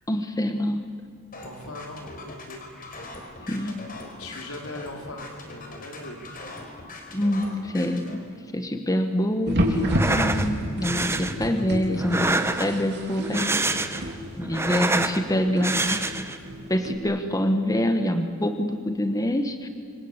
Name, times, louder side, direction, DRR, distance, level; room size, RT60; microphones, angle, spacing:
voice 1, 0.1-0.9 3.4-3.8 7.1-8.2 8.5-12.3 12.6-14.1 14.4-16.1 16.7-19.7, left 1 dB, 15° left, 7 dB, 1.3 m, -26 dB
sound 1, 1.3-8.2, left 2 dB, 40° left, 4.4 m, -41 dB
voice 2, 1.4-2.6 3.6-3.8 4.2-6.3, left 2 dB, 75° left, 2 dB, 4.3 m, -39 dB
sound 2, 9.5-17.0, equal, 50° right, 3.7 m, -30 dB
sound 3, 9.8-10.5 10.8-11.3 12.0-12.9 13.2-14.1 14.4-15.2 15.6-16.4, right 2 dB, 10° right, 1.2 m, -26 dB
27.0 x 24.5 x 8.2 m, 2.2 s
head